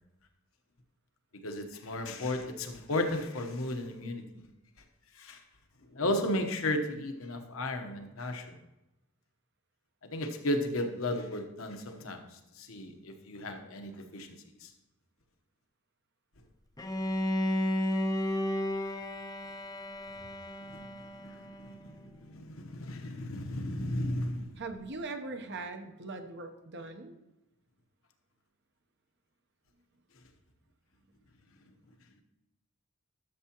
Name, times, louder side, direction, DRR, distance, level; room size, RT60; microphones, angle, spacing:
voice 1, 1.4-4.4 5.1-5.4 5.9-8.6 10.1-14.7 20.6-24.5, left 1 dB, 70° left, 5 dB, 1.1 m, -35 dB
Bowed string instrument, 16.8-21.8, left 1 dB, 15° left, 0.5 m, -33 dB
voice 2, 24.6-27.1, right 3 dB, 55° right, 6 dB, 1.0 m, -40 dB
12.0 x 6.9 x 3.0 m, 0.97 s
head